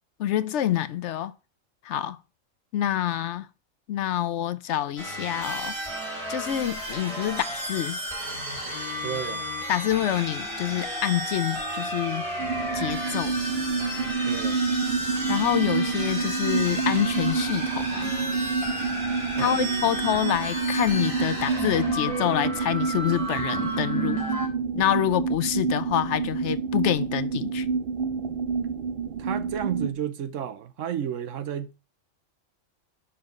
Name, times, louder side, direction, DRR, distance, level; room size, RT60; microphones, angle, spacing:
voice 1, 0.2-1.3 1.9-2.2 2.7-3.5 3.9-5.7 6.3-8.0 9.7-12.2 12.7-13.3 15.3-18.1 19.4-24.2 24.7-27.7, left 11 dB, 70° left, 0.9 m, -27 dB
sound 1, 5.0-24.5, equal, 25° right, 3.4 m, -32 dB
voice 2, 9.0-9.5 14.2-14.6 19.3-19.6 29.2-31.8, right 9 dB, 75° right, 1.1 m, -32 dB
sound 2, 12.4-29.9, right 5 dB, 60° right, 0.6 m, -28 dB
7.5 x 5.8 x 5.2 m
omnidirectional pair, 1.3 m